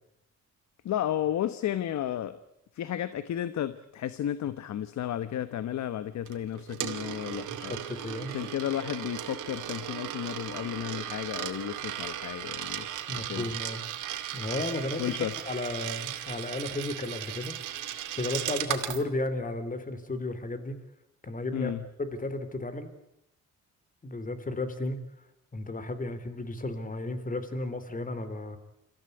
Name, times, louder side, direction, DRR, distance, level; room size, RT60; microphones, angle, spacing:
voice 1, 0.8-2.4 2.7-7.7 8.2-12.9 13.3-13.4 15.0-15.3 21.5-21.8, left 11 dB, 65° left, 14 dB, 1.2 m, -33 dB
Coin (dropping), 6.3-19.0, right 11 dB, 80° right, 2.3 m, -36 dB
voice 2, 7.6-8.4 13.1-13.8 14.3-17.5 18.1-20.8 21.2-21.7 22.0-22.9 24.0-25.0 25.5-28.6, left 2 dB, 25° left, 12 dB, 3.6 m, -34 dB
26.0 x 15.0 x 9.7 m, 0.81 s
cardioid pair, 90°, 30 cm